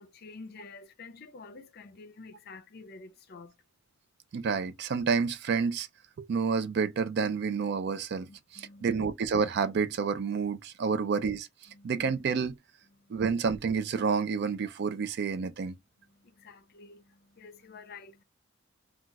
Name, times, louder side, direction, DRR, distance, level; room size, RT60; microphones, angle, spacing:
voice 1, 0.0-3.5 8.3-9.1 10.9-11.1 11.7-12.1 12.9-13.2 16.0-18.2, left 4 dB, 50° left, 0.5 m, -50 dB
voice 2, 4.3-5.9 6.2-8.3 8.5-11.5 11.8-12.5 13.1-15.8, right 5 dB, 55° right, 0.3 m, -29 dB
2.3 x 2.3 x 3.9 m
head